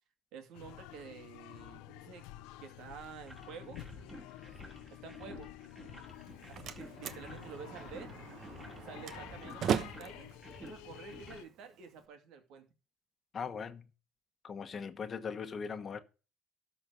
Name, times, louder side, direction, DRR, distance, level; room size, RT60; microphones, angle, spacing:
voice 1, 0.3-2.3 2.6-3.8 4.9-5.5 6.5-8.1 8.8-12.7, right 6 dB, 70° right, 2.5 m, -50 dB
sound 1, 0.5-11.4, left 15 dB, 90° left, 0.7 m, -50 dB
sound 2, 3.3-11.4, right 1 dB, 10° right, 2.5 m, -53 dB
Slam, 6.1-12.1, right 8 dB, 55° right, 1.0 m, -39 dB
voice 2, 13.3-13.9 14.4-16.0, left 6 dB, 35° left, 1.2 m, -39 dB
13.0 x 4.5 x 6.4 m
cardioid pair, 115°, 0 cm